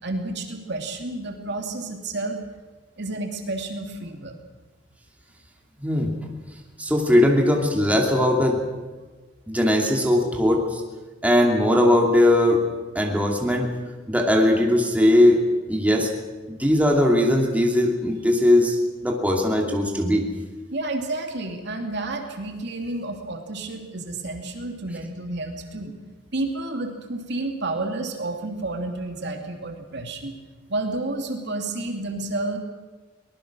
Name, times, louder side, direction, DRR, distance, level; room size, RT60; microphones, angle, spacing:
voice 1, 0.0-2.4 3.0-4.3 20.7-25.9 26.3-30.3 30.7-32.6, right 2 dB, 60° right, 4 dB, 2.7 m, -30 dB
voice 2, 5.8-6.1 6.8-8.6 9.5-10.8 11.2-12.6 12.9-13.7 14.1-15.4 15.7-16.1 16.5-20.2, left 1 dB, 10° right, 0 dB, 2.7 m, -19 dB
23.5 x 19.5 x 6.2 m, 1.3 s
head